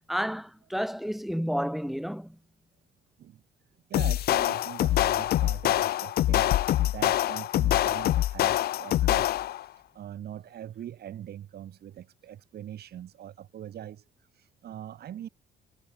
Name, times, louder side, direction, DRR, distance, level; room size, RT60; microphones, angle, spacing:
voice 1, 0.1-2.4, equal, ahead, 4.6 m, -31 dB
sound 1, 3.9-9.6, left 14 dB, 65° left, 0.5 m, -25 dB
voice 2, 3.9-6.6 6.8-14.0 14.3-15.3, right 11 dB, 70° right, 6.0 m, -42 dB
cardioid pair, 85°, 17 cm